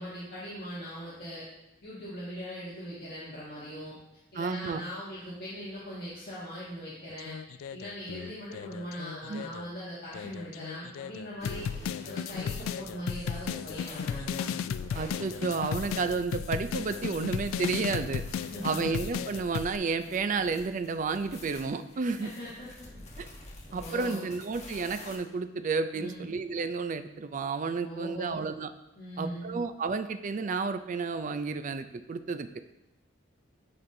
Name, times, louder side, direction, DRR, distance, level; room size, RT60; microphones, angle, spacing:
voice 1, 0.0-1.5 1.8-4.0 4.3-7.3 7.7-11.7 12.0-14.6 18.5-18.8 20.0-20.2 22.0-22.9 23.7-24.3 25.9-26.3 27.8-28.4 28.9-29.6, equal, 50° left, -10 dB, 1.7 m, -40 dB
voice 2, 4.4-4.8 9.3-9.4 14.9-18.2 18.6-22.3 23.2-23.3 23.7-28.7 29.2-32.6, right 4 dB, 40° right, 10 dB, 0.3 m, -31 dB
sound 1, 7.1-9.7 10.1-19.8, left 7 dB, 90° left, 0.3 m, -35 dB
sound 2, 11.4-25.2, left 2 dB, 35° left, 1.1 m, -48 dB
10.5 x 4.3 x 2.7 m, 0.91 s
head